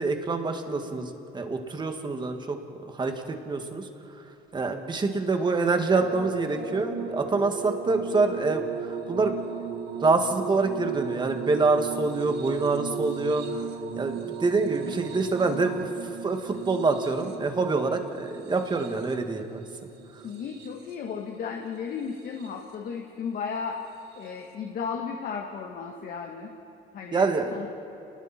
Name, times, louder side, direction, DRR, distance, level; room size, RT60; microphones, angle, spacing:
voice 1, 0.0-3.9 4.5-13.4 14.0-15.9 16.2-19.6 27.1-27.7, right 3 dB, 25° right, 5 dB, 2.2 m, -26 dB
sound 1, 5.9-21.1 22.0-22.7 24.1-24.3, right 8 dB, 80° right, 2.0 m, -37 dB
voice 2, 15.5-15.9 20.2-23.8 24.1-26.5 26.9-27.7, left 6 dB, 60° left, 2 dB, 1.7 m, -35 dB
29.0 x 20.0 x 4.5 m, 3.0 s
cardioid pair, 110°, 17 cm